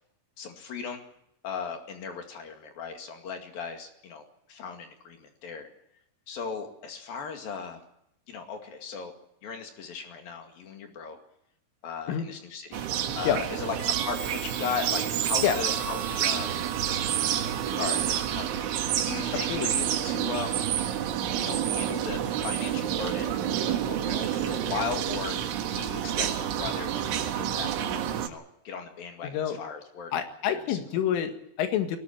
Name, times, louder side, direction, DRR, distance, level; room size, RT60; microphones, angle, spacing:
voice 1, 0.4-1.0 1.4-4.2 4.5-5.7 6.3-7.8 8.3-9.1 9.4-11.2 11.8-16.6 17.8-18.7 19.0-20.7 21.4-25.4 25.7-30.1 30.5-30.8, left 5 dB, 55° left, 4 dB, 3.6 m, -37 dB
sound 1, 12.7-28.3, right 10 dB, 75° right, 3.9 m, -29 dB
Harmonica, 13.8-18.8, right 9 dB, 55° right, 3.4 m, -38 dB
voice 2, 29.2-29.6 30.1-32.0, left 9 dB, 80° left, 7 dB, 4.3 m, -27 dB
21.0 x 18.5 x 8.9 m, 0.77 s
omnidirectional pair, 5.7 m